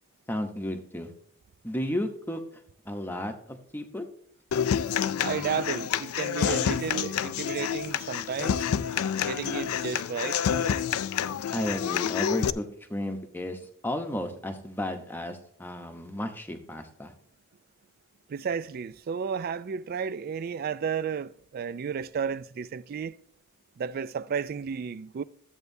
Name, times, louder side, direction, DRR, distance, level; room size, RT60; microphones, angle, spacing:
voice 1, 0.3-1.1 1.6-2.4 2.9-4.0 11.5-12.6 12.9-17.1, left 1 dB, 10° left, 0.8 m, -33 dB
Human voice / Acoustic guitar, 4.5-12.5, left 8 dB, 85° left, 0.4 m, -28 dB
voice 2, 5.2-8.7 9.2-10.4 18.3-23.2 23.8-25.2, right 6 dB, 45° right, 0.3 m, -32 dB
13.0 x 7.9 x 2.7 m
head